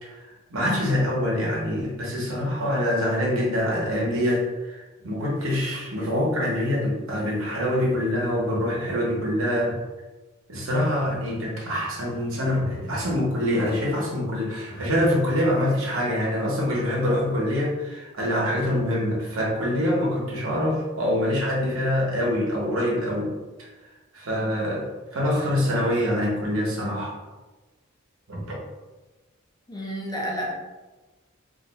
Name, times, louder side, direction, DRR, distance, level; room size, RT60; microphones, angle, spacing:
voice 1, 0.0-9.8 10.5-23.3 23.6-23.7 24.1-27.2 28.3-28.4, left 1 dB, 65° right, -4 dB, 1.0 m, -25 dB
voice 2, 29.7-30.5, equal, 20° left, -2 dB, 0.4 m, -30 dB
2.6 x 2.3 x 4.0 m, 1.2 s
head